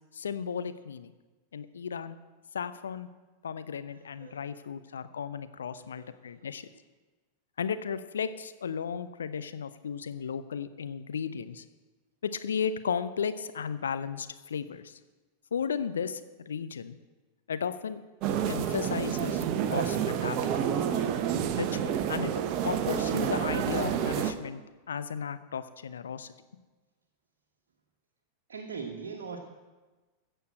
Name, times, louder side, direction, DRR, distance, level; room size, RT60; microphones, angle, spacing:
voice 1, 0.1-1.1 1.5-2.2 2.5-3.1 3.4-6.7 7.6-11.6 12.2-15.0 15.5-17.0 17.5-18.0 18.5-20.5 21.6-22.3 22.6-24.6 24.9-26.3, left 7 dB, 70° left, 12 dB, 0.7 m, -34 dB
voice 2, 3.9-4.5 5.9-6.3 28.5-29.4, right 5 dB, 65° right, 0 dB, 1.4 m, -41 dB
sound 1, 18.2-24.3, right 9 dB, 40° right, 1.0 m, -29 dB
15.0 x 6.8 x 7.7 m, 1.2 s
figure-of-eight pair, 90°, 0 cm